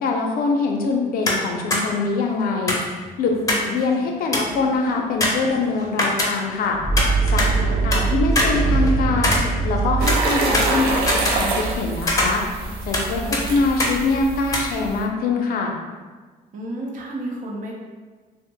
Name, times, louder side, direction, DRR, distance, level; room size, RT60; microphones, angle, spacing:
voice 1, 0.0-2.8 3.2-3.3 3.7-6.8 7.3-9.4 9.6-12.4 12.9-15.8, left 4 dB, 75° left, 2 dB, 0.5 m, -23 dB
sound 1, 1.2-1.4 1.7-1.8 2.7-3.7 4.0-4.1 4.3-4.6 5.2-6.6 7.0-8.0 8.3-9.8 10.1-11.8 12.1-13.1 13.3-13.4 13.8-14.0 14.5-14.6, left 1 dB, 20° left, 0.6 m, -23 dB
voice 2, 3.3-3.8 7.5-7.8 13.0-13.5 16.5-17.7, equal, 60° right, -2 dB, 0.8 m, -32 dB
sound 2, 5.5-5.6 6.7-10.4, right 4 dB, 30° right, 0.9 m, -21 dB
sound 3, 10.0-15.0, right 3 dB, 90° right, 0.5 m, -26 dB
2.9 x 2.0 x 3.7 m, 1.4 s
cardioid pair, 110°, 15 cm